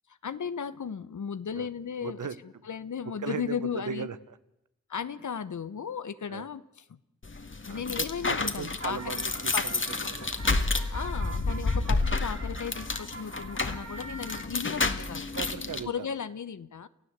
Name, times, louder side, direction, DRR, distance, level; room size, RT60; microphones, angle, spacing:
voice 1, 0.1-2.3 2.6-4.1 4.9-7.0 7.6-9.0 9.5-9.7 10.9-15.3 15.8-16.9, left 7 dB, 70° left, 14 dB, 1.0 m, -35 dB
voice 2, 2.0-2.4 3.2-4.2 6.3-6.5 7.7-10.3 11.8-11.9 15.4-16.1, right 6 dB, 85° right, 14 dB, 1.2 m, -38 dB
sound 1, 7.2-15.8, left 3 dB, 40° left, 2.0 m, -30 dB
sound 2, 8.5-14.5, right 3 dB, 50° right, 4.6 m, -45 dB
29.0 x 15.0 x 8.1 m, 0.86 s
cardioid pair, 55°, 30 cm